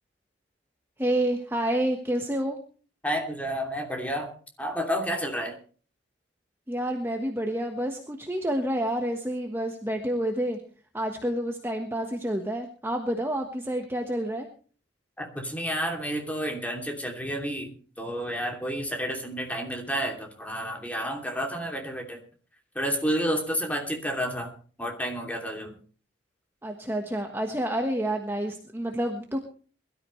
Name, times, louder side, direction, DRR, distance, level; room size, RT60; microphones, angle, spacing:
voice 1, 1.0-2.6 6.7-10.6 10.9-14.5 26.6-29.4, right 1 dB, 10° right, 3 dB, 1.3 m, -29 dB
voice 2, 3.0-4.3 4.6-5.6 15.2-17.7 18.0-22.2 22.7-24.5 24.8-25.7, equal, 10° left, 2 dB, 2.8 m, -30 dB
22.0 x 13.0 x 3.2 m, 0.40 s
head